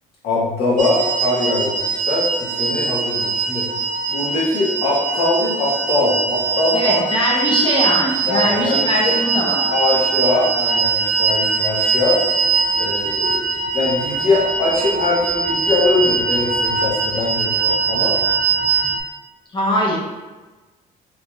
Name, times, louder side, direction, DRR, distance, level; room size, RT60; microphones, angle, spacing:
voice 1, 0.2-3.7 4.1-7.0 8.2-9.1 9.7-12.2 12.8-18.2, left 2 dB, 65° left, -6 dB, 1.4 m, -22 dB
sound 1, 0.8-19.0, right 4 dB, 45° right, 0.4 m, -21 dB
voice 2, 6.7-9.7 19.5-20.0, left 1 dB, 30° left, -2 dB, 0.9 m, -21 dB
3.7 x 3.1 x 2.4 m, 1.2 s
cardioid pair, 110°, 17 cm